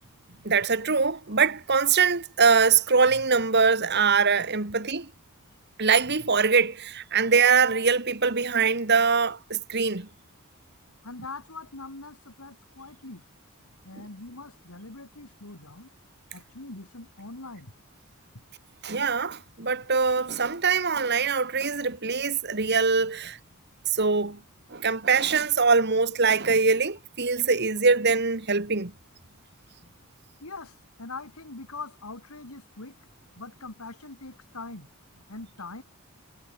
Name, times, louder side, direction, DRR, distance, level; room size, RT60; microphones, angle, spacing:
voice 1, 0.4-5.1 5.8-10.1 18.8-23.4 23.9-24.4 24.7-28.9, right 5 dB, 50° right, 2.0 m, -23 dB
voice 2, 11.0-13.2 13.8-15.9 16.3-17.7 30.4-32.9 33.4-34.9 35.3-35.8, left 3 dB, 80° left, 2.9 m, -42 dB
head